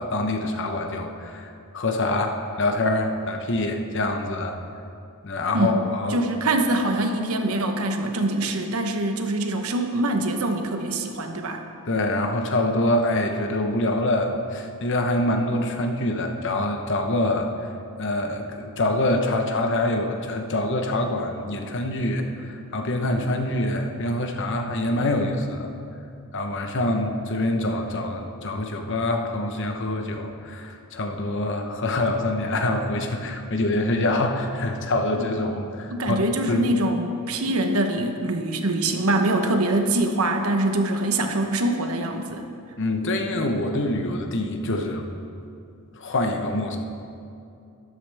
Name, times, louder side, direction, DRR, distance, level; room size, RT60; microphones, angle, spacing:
voice 1, 0.0-4.6 5.2-6.2 11.9-17.5 18.0-25.7 26.3-36.6 42.8-45.1 46.0-46.8, left 1 dB, 55° left, 4 dB, 1.0 m, -25 dB
voice 2, 6.1-11.6 35.2-35.3 35.9-42.5, right 2 dB, 70° right, 5 dB, 1.0 m, -24 dB
12.5 x 11.5 x 3.5 m, 2.6 s
head